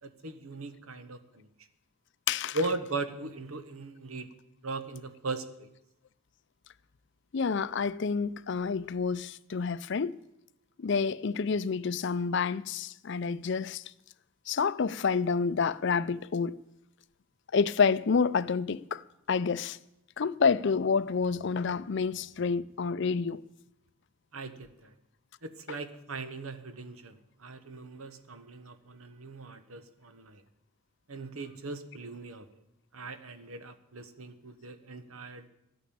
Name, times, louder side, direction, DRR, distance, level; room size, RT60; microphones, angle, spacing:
voice 1, 0.0-1.7 2.5-4.3 4.6-5.7 24.3-24.9 25.4-30.4 31.1-32.6 32.9-35.5, right 3 dB, 90° right, 1.2 m, -39 dB
voice 2, 2.3-2.6 7.3-10.2 10.8-13.8 14.5-16.6 17.5-19.8 20.2-23.4, left 5 dB, 55° left, 0.5 m, -28 dB
13.5 x 9.2 x 8.6 m
head